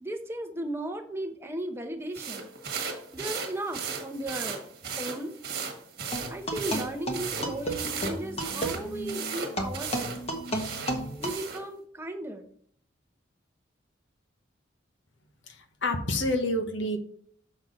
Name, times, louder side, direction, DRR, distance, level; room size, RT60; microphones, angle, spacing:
voice 1, 0.0-2.5 3.1-4.6 5.0-5.3 6.3-10.2 11.2-12.5, right 1 dB, 10° right, 4 dB, 0.8 m, -36 dB
sound 1, 2.1-11.6, right 5 dB, 50° right, 1.5 m, -36 dB
sound 2, 6.1-11.3, right 1 dB, 30° left, 1.2 m, -33 dB
voice 2, 15.5-17.0, left 1 dB, 70° left, 6 dB, 1.2 m, -28 dB
7.0 x 6.0 x 4.0 m, 0.62 s
head